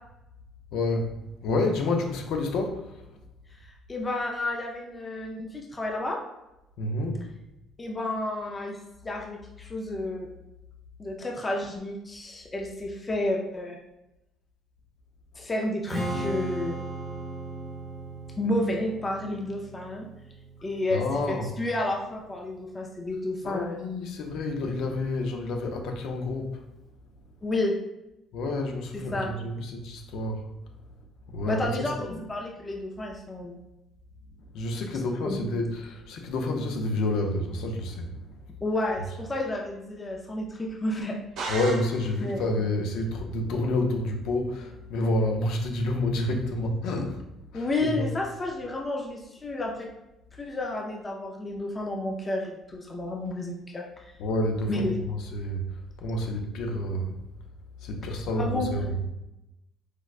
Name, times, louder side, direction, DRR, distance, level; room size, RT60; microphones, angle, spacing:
voice 1, 0.7-3.1 6.8-7.2 20.9-21.5 23.4-26.6 28.3-30.5 31.3-32.2 34.5-38.4 41.5-47.2 47.5-48.1 54.2-57.2 57.8-58.9, left 2 dB, 70° left, 3 dB, 0.5 m, -29 dB
voice 2, 3.6-6.2 7.8-8.8 9.0-10.3 11.0-13.8 15.4-16.8 18.4-20.1 20.6-21.0 21.3-23.8 27.4-27.7 29.1-29.3 31.5-33.6 35.2-35.4 38.6-41.5 42.2-42.4 47.5-49.9 50.4-53.8 54.7-55.0 58.4-58.7, left 1 dB, 15° left, 0 dB, 0.3 m, -31 dB
Strum, 15.9-22.1, right 1 dB, 15° right, 0.8 m, -37 dB
sound 1, 41.4-42.4, right 3 dB, 60° right, 0.7 m, -35 dB
4.6 x 2.1 x 2.4 m, 0.92 s
cardioid pair, 165°, 0 cm